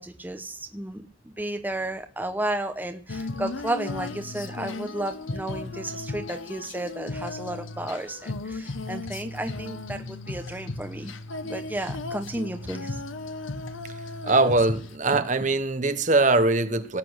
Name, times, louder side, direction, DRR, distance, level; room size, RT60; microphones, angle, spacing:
voice 1, 0.0-11.1 11.4-13.0, right 1 dB, 10° right, 6 dB, 0.9 m, -33 dB
Female singing, 3.1-15.0, left 3 dB, 80° left, 1.0 m, -35 dB
voice 2, 14.2-17.0, right 2 dB, 40° right, 10 dB, 1.1 m, -22 dB
18.5 x 8.5 x 6.4 m, 0.42 s
head